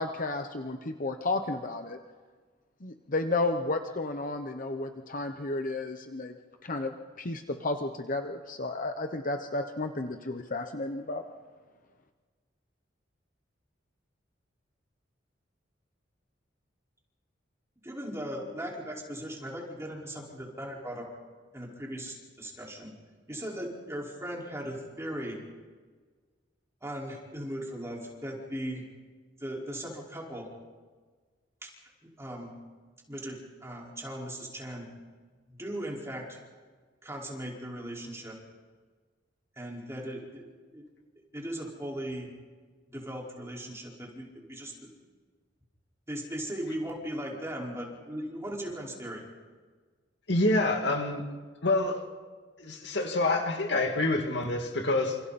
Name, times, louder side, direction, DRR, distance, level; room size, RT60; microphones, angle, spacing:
voice 1, 0.0-2.0 2.8-6.3 6.6-11.2, left 2 dB, 50° left, 1.0 m, -32 dB
voice 2, 17.8-21.1 21.5-22.9 23.3-25.4 26.8-28.8 29.4-30.5 31.6-31.7 32.2-32.5 33.1-34.9 35.5-36.4 37.0-38.4 39.6-40.4 40.7-40.8 41.3-42.3 42.9-44.7 46.1-49.2, right 1 dB, 15° right, 5.0 m, -38 dB
voice 3, 50.3-51.2 51.6-52.0 52.6-55.2, left 2 dB, 65° left, 2.6 m, -27 dB
29.0 x 28.0 x 4.3 m
head